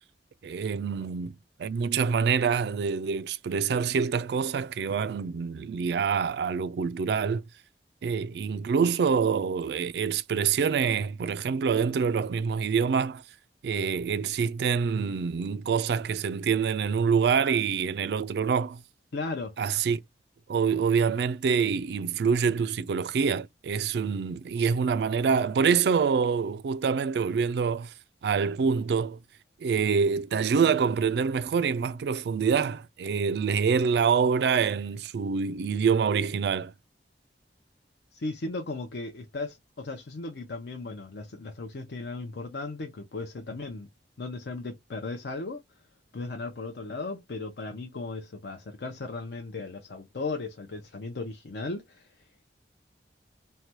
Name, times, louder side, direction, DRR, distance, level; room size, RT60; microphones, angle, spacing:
voice 1, 0.4-7.4 8.0-13.2 13.6-18.8 19.6-20.0 20.5-27.9 28.2-29.2 29.6-36.7, right 6 dB, 65° right, 0.3 m, -26 dB
voice 2, 19.1-19.6 38.1-43.9 44.2-45.6 46.1-52.3, left 3 dB, 70° left, 0.6 m, -36 dB
3.2 x 2.2 x 2.7 m
head